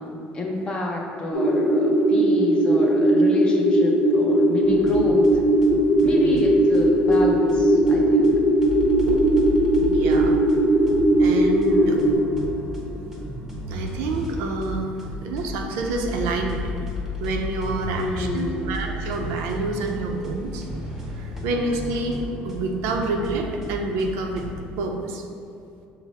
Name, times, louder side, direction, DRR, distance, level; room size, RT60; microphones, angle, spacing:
voice 1, 0.0-5.4 6.0-8.3 17.9-18.8, left 1 dB, 25° left, -1 dB, 0.6 m, -28 dB
sound 1, 1.3-12.1, right 1 dB, 60° left, 1.0 m, -19 dB
sound 2, 4.6-24.6, left 2 dB, 10° right, 0.7 m, -34 dB
voice 2, 6.0-6.4 9.8-10.4 11.2-12.0 13.7-16.8 17.2-20.6 21.1-24.5 24.8-25.2, right 3 dB, 85° right, 2 dB, 0.5 m, -28 dB
5.7 x 2.0 x 4.1 m, 2.5 s
cardioid pair, 125°, 4 cm